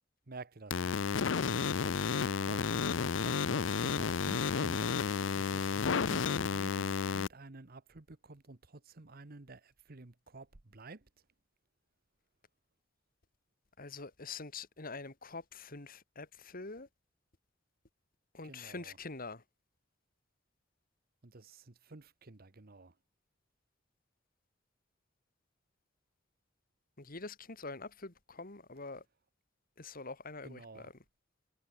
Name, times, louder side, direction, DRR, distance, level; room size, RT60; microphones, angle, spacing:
voice 1, 0.3-1.1 1.4-5.0 5.3-11.1 18.4-19.0 21.2-22.9 30.4-30.9, right 3 dB, 50° right, 1.2 m, -51 dB
sound 1, 0.7-7.3, left 5 dB, 75° left, 0.6 m, -32 dB
voice 2, 13.8-16.9 18.3-19.4 27.0-29.0 29.8-30.9, left 3 dB, 50° left, 2.6 m, -45 dB
head